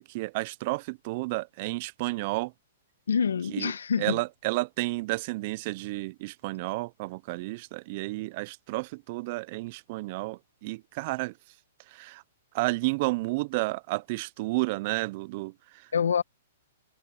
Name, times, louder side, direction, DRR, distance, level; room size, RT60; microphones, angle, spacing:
voice 1, 0.0-2.5 3.5-3.7 4.0-11.4 11.9-12.2 12.5-15.9, right 23 dB, 45° right, 0.5 m, -31 dB
voice 2, 3.1-4.2 15.9-16.2, left 7 dB, 80° left, 1.3 m, -26 dB
hypercardioid pair, 125°, 0 cm